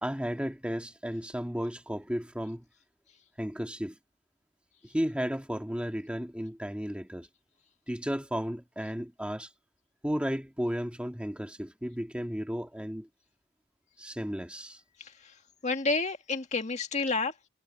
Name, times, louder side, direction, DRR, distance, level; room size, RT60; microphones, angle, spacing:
voice 1, 0.0-2.6 3.4-4.0 4.8-7.3 7.9-9.5 10.0-13.1 14.0-14.8, equal, 5° right, 1.9 m, -34 dB
voice 2, 15.0-15.3 15.6-17.3, left 3 dB, 35° left, 1.9 m, -30 dB
head